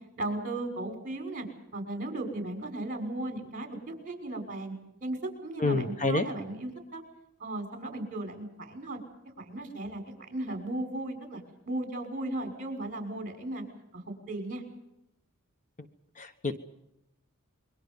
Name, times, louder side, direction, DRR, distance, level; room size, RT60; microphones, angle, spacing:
voice 1, 0.2-1.5 1.7-4.7 5.0-7.0 7.4-9.0 9.4-13.6 13.9-14.6, right 2 dB, 40° right, 4 dB, 5.9 m, -36 dB
voice 2, 5.6-6.3 16.2-16.6, left 2 dB, 35° left, 9 dB, 1.2 m, -28 dB
27.5 x 23.5 x 5.5 m, 0.86 s
head